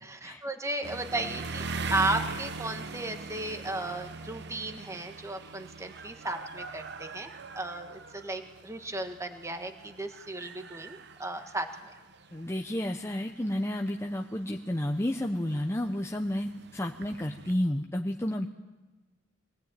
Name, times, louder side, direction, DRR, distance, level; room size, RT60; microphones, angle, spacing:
voice 1, 0.0-1.6 1.9-11.9, right 2 dB, 15° right, 6 dB, 1.5 m, -35 dB
sound 1, 0.8-17.5, right 4 dB, 60° right, 0.9 m, -42 dB
voice 2, 12.3-18.5, left 1 dB, 15° left, 3 dB, 0.8 m, -31 dB
22.0 x 18.5 x 9.0 m, 1.1 s
head